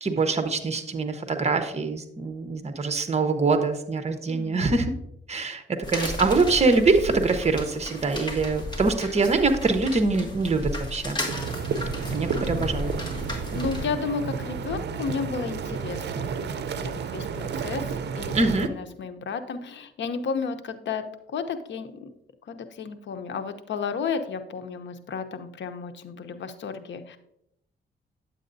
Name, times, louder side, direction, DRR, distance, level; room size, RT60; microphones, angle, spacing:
voice 1, 0.0-4.9 5.3-5.6 5.9-11.2 12.1-12.9 18.3-18.7, right 3 dB, 35° right, 7 dB, 1.0 m, -24 dB
voice 2, 4.3-4.7 10.2-10.3 12.3-12.7 13.5-16.5 16.7-17.8 18.2-21.0 21.3-22.1 22.5-27.2, left 5 dB, 70° left, 9 dB, 0.8 m, -33 dB
sound 1, 5.8-13.8, left 1 dB, 20° left, 2.0 m, -34 dB
sound 2, 11.3-18.7, right 6 dB, 60° right, 0.6 m, -31 dB
9.3 x 7.6 x 2.7 m, 0.79 s
cardioid pair, 90°, 20 cm